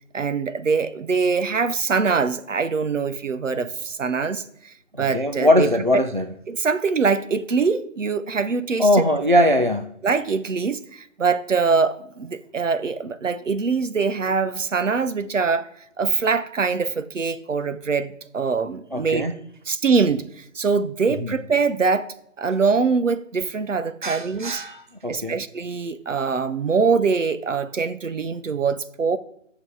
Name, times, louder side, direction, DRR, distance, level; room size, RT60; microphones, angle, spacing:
voice 1, 0.1-5.7 6.5-9.1 9.4-9.5 10.0-15.7 16.0-19.3 19.7-24.6 25.1-29.2, right 5 dB, 70° right, 0.8 m, -23 dB
voice 2, 5.0-6.3 8.8-10.0 18.9-19.3 21.2-21.4 24.0-25.4, left 1 dB, 40° right, 0.4 m, -21 dB
7.9 x 6.2 x 4.7 m
figure-of-eight pair, 175°, 40 cm